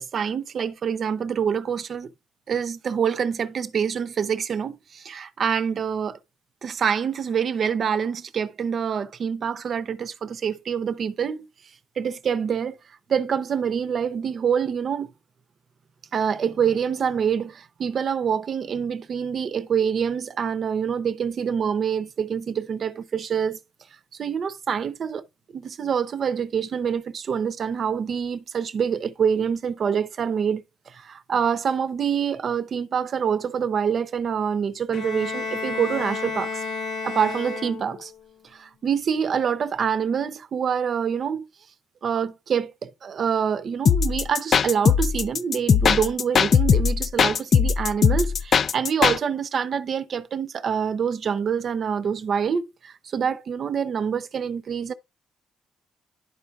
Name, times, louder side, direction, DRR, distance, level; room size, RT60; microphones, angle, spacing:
voice 1, 0.0-2.1 2.5-6.2 6.6-11.5 12.0-12.8 13.1-15.1 16.1-23.6 24.2-25.3 25.5-36.6 37.0-38.1 38.4-41.5 42.0-54.9, right 7 dB, 55° right, 0.7 m, -26 dB
Bowed string instrument, 34.9-38.1, left 4 dB, 70° left, 1.0 m, -31 dB
sound 1, 43.9-49.2, left 6 dB, 50° left, 0.3 m, -19 dB
11.5 x 4.6 x 2.4 m
cardioid pair, 90°, 0 cm